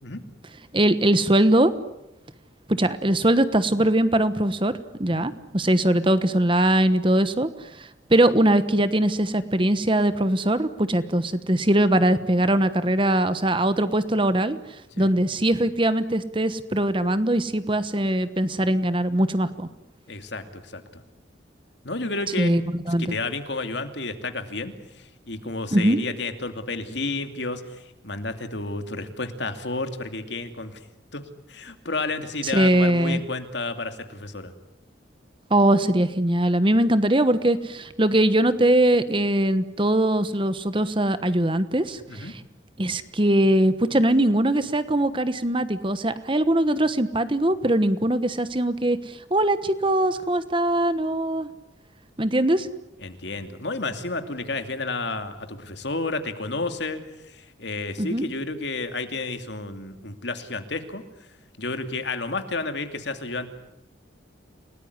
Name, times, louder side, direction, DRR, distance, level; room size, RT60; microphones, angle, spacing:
voice 1, 0.7-1.7 2.7-4.7 5.0-14.6 15.0-19.7 22.4-22.6 22.9-23.2 25.7-26.0 32.4-33.2 35.5-42.4 42.8-51.5 52.2-52.7 58.0-58.2, right 1 dB, 25° right, 13 dB, 1.2 m, -21 dB
voice 2, 20.1-21.0 21.8-22.5 23.0-30.8 31.1-31.2 31.5-34.5 42.1-42.3 53.0-61.0 61.6-63.5, left 3 dB, 65° left, 7 dB, 2.6 m, -31 dB
29.5 x 19.0 x 9.8 m, 0.90 s
head